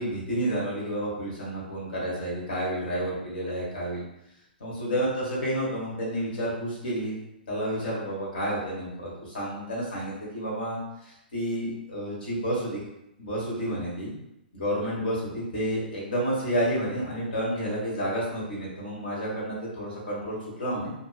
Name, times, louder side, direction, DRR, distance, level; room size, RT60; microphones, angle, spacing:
voice 1, 0.0-4.0 4.6-7.2 7.5-12.8 13.2-14.1 14.5-20.9, equal, 60° left, -5 dB, 1.2 m, -30 dB
2.6 x 2.3 x 2.3 m, 0.85 s
figure-of-eight pair, 115°, 6 cm